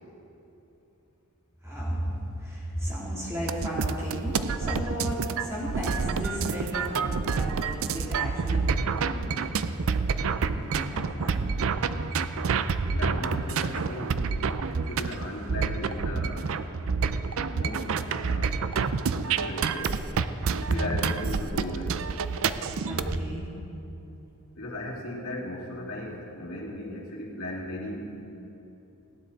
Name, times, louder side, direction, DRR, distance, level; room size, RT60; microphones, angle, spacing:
voice 1, 1.6-9.4 10.5-11.5 20.7-21.0 22.8-23.4, equal, 15° right, -6 dB, 3.2 m, -34 dB
sound 1, 3.5-23.2, right 5 dB, 65° right, 0.5 m, -28 dB
voice 2, 12.9-16.5 17.5-18.6 19.2-20.0 20.6-22.0 24.6-28.1, left 1 dB, 70° left, -4 dB, 2.7 m, -37 dB
18.0 x 9.9 x 4.1 m, 2.9 s
head